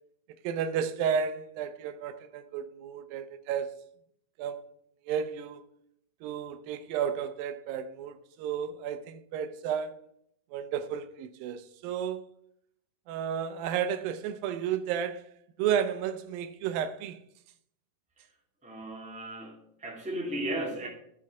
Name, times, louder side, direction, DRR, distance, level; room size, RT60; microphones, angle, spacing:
voice 1, 0.4-3.7 4.4-4.7 5.1-5.6 6.2-10.0 10.5-12.2 13.1-15.2 15.6-17.2, right 8 dB, 90° right, 2.5 m, -32 dB
voice 2, 18.6-20.9, right 1 dB, 5° right, 1.5 m, -35 dB
12.0 x 6.3 x 4.7 m
omnidirectional pair, 4.0 m